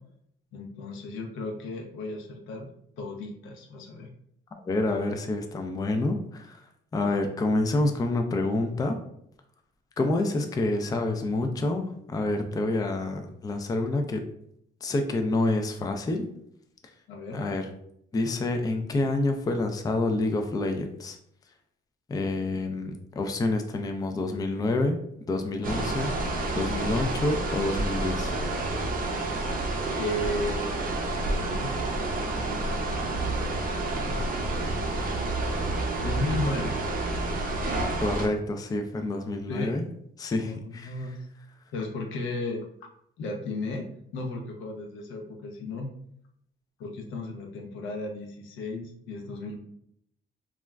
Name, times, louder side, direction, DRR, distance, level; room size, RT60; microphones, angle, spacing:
voice 1, 0.5-2.7 3.0-4.1 17.1-17.4 25.5-25.9 29.9-30.7 31.2-33.1 33.9-34.5 36.0-36.7 39.5-39.7 40.4-41.2 41.7-42.6 43.2-45.9 46.8-49.6, left 2 dB, 85° left, 1 dB, 0.6 m, -35 dB
voice 2, 4.7-6.7 6.9-9.0 10.0-14.2 14.8-16.3 17.3-17.7 18.1-21.2 22.1-25.0 25.3-26.1 26.5-28.3 38.0-39.8 40.2-40.9, left 2 dB, 20° left, 5 dB, 0.3 m, -28 dB
sound 1, 25.6-38.3, right 2 dB, 45° right, 0.5 m, -29 dB
2.3 x 2.0 x 3.3 m, 0.70 s
cardioid pair, 90°, 20 cm